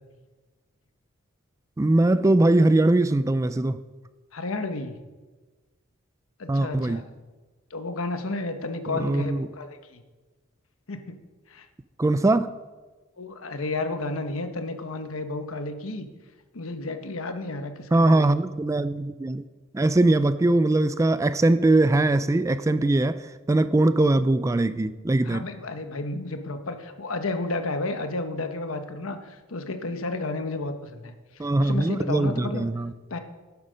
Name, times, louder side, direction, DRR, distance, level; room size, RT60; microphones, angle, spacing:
voice 1, 1.8-3.8 6.5-7.0 8.9-9.5 12.0-12.5 17.9-19.4 19.7-25.4 31.4-32.9, right 2 dB, 15° right, 14 dB, 0.3 m, -21 dB
voice 2, 4.3-5.0 6.4-7.0 7.7-10.0 10.9-11.1 11.5-11.7 13.2-16.1 16.5-18.3 25.2-32.7 33.1-33.2, left 2 dB, 80° left, 8 dB, 1.1 m, -32 dB
11.5 x 8.2 x 5.1 m, 1.3 s
head